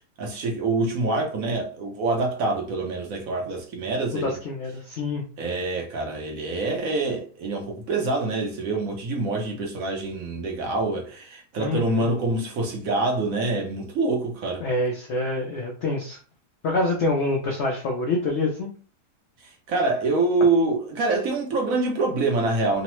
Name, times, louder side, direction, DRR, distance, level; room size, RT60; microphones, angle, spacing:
voice 1, 0.0-4.4 5.4-14.6 19.4-22.8, right 2 dB, 65° right, 1.0 m, -25 dB
voice 2, 4.1-5.2 11.6-12.1 14.6-16.2 16.6-18.7, left 2 dB, 75° left, 0.6 m, -26 dB
3.1 x 2.0 x 2.9 m
omnidirectional pair, 1.7 m